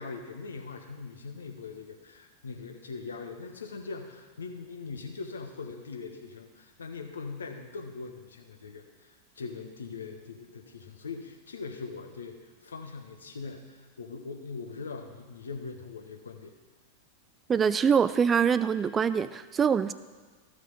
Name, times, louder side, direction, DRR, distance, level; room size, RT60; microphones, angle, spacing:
voice 1, 0.0-16.5, left 4 dB, 70° left, 4 dB, 1.2 m, -41 dB
voice 2, 17.5-19.9, right 7 dB, 20° right, 14 dB, 0.4 m, -24 dB
14.5 x 6.5 x 5.4 m, 1.4 s
figure-of-eight pair, 90°, 0 cm